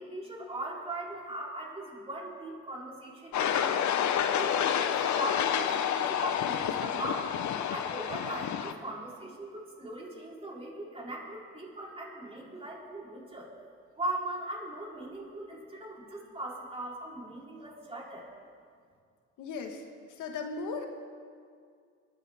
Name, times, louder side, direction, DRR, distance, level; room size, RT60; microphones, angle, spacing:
voice 1, 0.0-3.7 4.3-7.3 7.7-13.5 14.0-18.3, right 2 dB, 20° right, -4 dB, 3.9 m, -39 dB
sound 1, 3.3-8.7, left 9 dB, 70° left, 0.9 m, -29 dB
voice 2, 19.4-19.8 20.2-20.8, left 4 dB, 85° left, 3 dB, 1.6 m, -36 dB
23.0 x 13.0 x 3.6 m, 2.2 s
cardioid pair, 90°, 30 cm